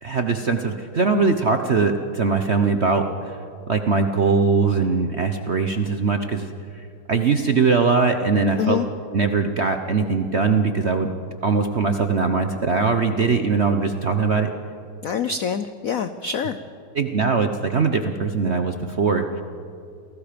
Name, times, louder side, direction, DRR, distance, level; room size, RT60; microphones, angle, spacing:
voice 1, 0.0-3.4 3.7-8.8 9.1-11.1 11.4-14.5 16.9-19.4, right 4 dB, 55° right, 6 dB, 0.7 m, -21 dB
voice 2, 15.0-16.6, left 7 dB, 90° left, 11 dB, 0.7 m, -25 dB
29.0 x 18.5 x 5.2 m, 2.5 s
omnidirectional pair, 2.4 m